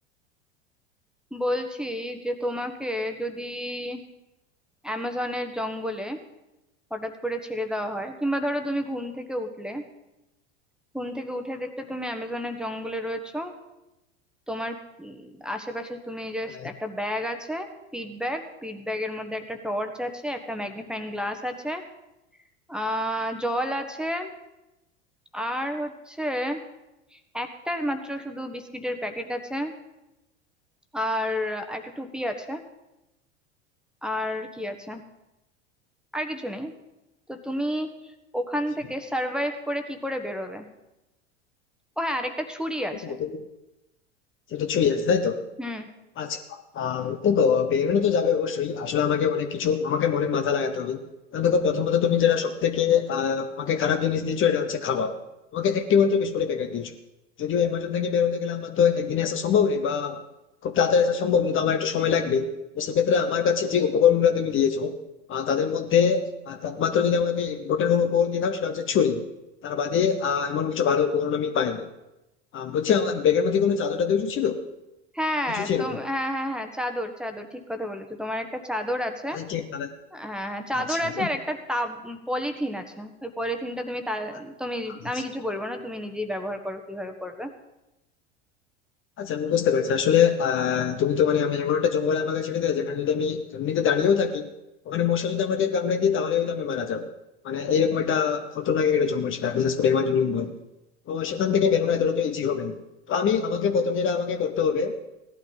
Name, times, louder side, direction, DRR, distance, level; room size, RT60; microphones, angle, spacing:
voice 1, 1.3-4.0 4.8-6.2 6.9-9.8 10.9-13.5 14.5-21.8 22.7-24.3 25.3-26.6 27.1-29.7 30.9-32.6 34.0-35.0 36.1-36.7 37.3-37.9 38.3-40.7 42.0-43.2 45.6-45.9 75.1-79.4 80.1-87.5, equal, ahead, 6 dB, 1.3 m, -30 dB
voice 2, 43.0-43.4 44.5-45.4 46.2-51.1 51.3-55.2 55.5-56.9 57.4-60.2 60.6-65.0 65.3-69.3 69.6-71.9 72.5-74.6 75.5-76.0 79.3-79.9 80.9-81.3 85.1-85.2 89.2-94.5 94.9-97.1 97.4-100.5 101.1-102.8 103.1-105.0, left 7 dB, 35° left, 7 dB, 1.0 m, -24 dB
16.5 x 12.0 x 4.0 m, 0.95 s
hypercardioid pair, 85°, 34 cm